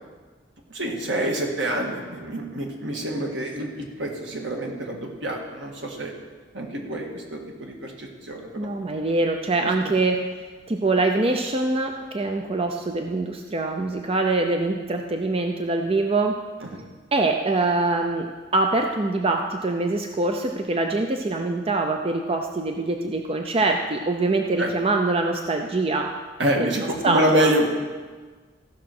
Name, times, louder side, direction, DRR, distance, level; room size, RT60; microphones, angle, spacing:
voice 1, 0.7-6.1 6.5-8.7 9.8-9.9 16.6-16.8 24.6-24.7 26.4-27.7, right 1 dB, 70° right, 1 dB, 1.8 m, -27 dB
voice 2, 8.6-10.2 10.7-16.4 17.1-26.1 26.6-26.7 27.0-27.5, right 2 dB, 30° right, 3 dB, 0.6 m, -24 dB
15.0 x 6.2 x 6.0 m, 1.4 s
head